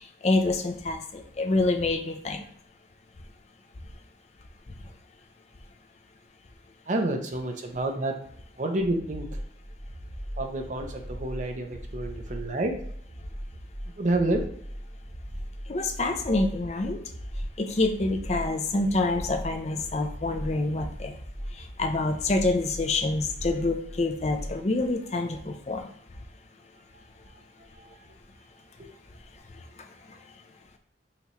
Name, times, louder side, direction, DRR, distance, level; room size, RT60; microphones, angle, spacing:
voice 1, 0.2-2.4 15.7-17.0 17.6-21.1 21.8-25.9, left 2 dB, 35° left, 5 dB, 0.5 m, -26 dB
voice 2, 6.9-8.1 8.6-9.4 10.4-12.7 14.0-14.4 27.7-27.9 28.8-28.9, right 2 dB, 40° right, 4 dB, 0.6 m, -29 dB
sound 1, 8.8-24.6, equal, ahead, 1.7 m, -39 dB
5.7 x 3.0 x 3.1 m, 0.66 s
head